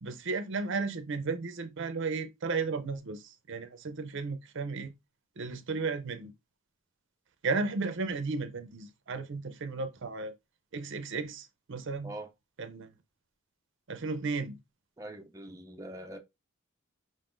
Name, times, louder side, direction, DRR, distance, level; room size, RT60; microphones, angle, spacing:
voice 1, 0.0-4.9 5.4-6.3 7.4-10.3 10.7-12.1 12.6-13.0 13.9-14.6, right 4 dB, 65° right, 0.6 m, -34 dB
voice 2, 15.0-16.2, right 1 dB, 15° right, 0.5 m, -43 dB
5.3 x 3.6 x 2.6 m
head